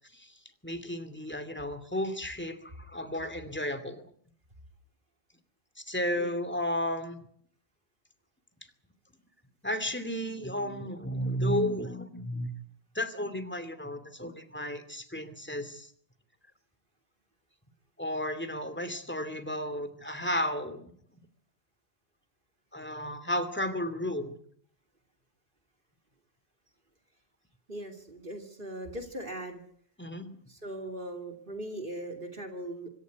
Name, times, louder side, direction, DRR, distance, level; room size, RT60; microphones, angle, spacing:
voice 1, 0.6-4.0 5.8-7.2 9.6-12.5 12.9-15.9 18.0-20.9 22.7-24.4 30.0-30.3, equal, 10° left, 10 dB, 2.6 m, -33 dB
voice 2, 27.7-29.6 30.5-32.9, right 1 dB, 55° right, 5 dB, 3.1 m, -39 dB
26.0 x 14.0 x 9.5 m, 0.63 s
omnidirectional pair, 1.1 m